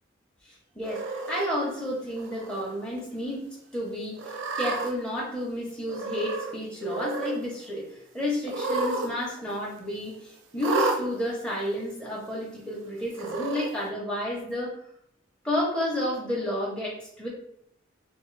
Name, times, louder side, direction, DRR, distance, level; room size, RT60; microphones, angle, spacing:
voice 1, 0.4-3.4 3.7-14.7 15.4-17.3, left 1 dB, 5° left, -5 dB, 0.7 m, -31 dB
Cat, 0.8-1.4 2.2-2.6 3.0-3.1 4.2-4.9 5.9-6.5 6.8-7.4 8.4-9.1 9.4-9.5 10.6-11.0 11.9-12.0 13.1-13.7, right 3 dB, 80° right, 0.5 m, -30 dB
3.4 x 2.6 x 3.1 m, 0.74 s
head